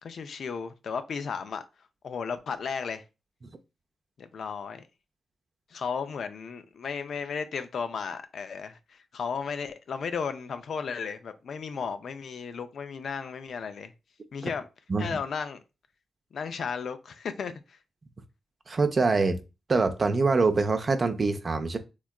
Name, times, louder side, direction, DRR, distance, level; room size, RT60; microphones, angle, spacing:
voice 1, 0.0-1.6 2.0-3.0 4.2-4.8 5.7-13.9 14.3-14.7 15.0-15.6 16.3-17.8, left 6 dB, 65° left, 0.3 m, -34 dB
voice 2, 18.7-19.4 19.7-21.8, right 3 dB, 45° right, 0.5 m, -24 dB
3.4 x 2.3 x 2.2 m
hypercardioid pair, 40°, 0 cm